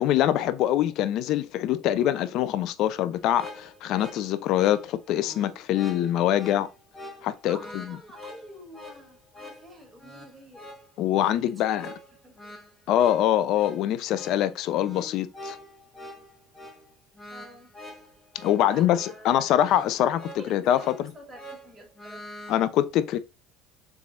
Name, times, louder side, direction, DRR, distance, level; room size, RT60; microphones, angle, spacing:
voice 1, 0.0-6.7 7.2-7.8 11.0-11.9 12.9-15.6 18.4-20.8 22.5-23.2, left 11 dB, 65° left, 0.3 m, -24 dB
sound 1, 3.3-22.6, left 1 dB, 15° left, 1.2 m, -45 dB
voice 2, 7.5-10.7 11.5-11.8 12.2-12.5 17.3-17.7 18.6-19.5 20.3-22.3, equal, 10° right, 1.6 m, -48 dB
3.4 x 3.3 x 2.5 m
supercardioid pair, 85°, 0 cm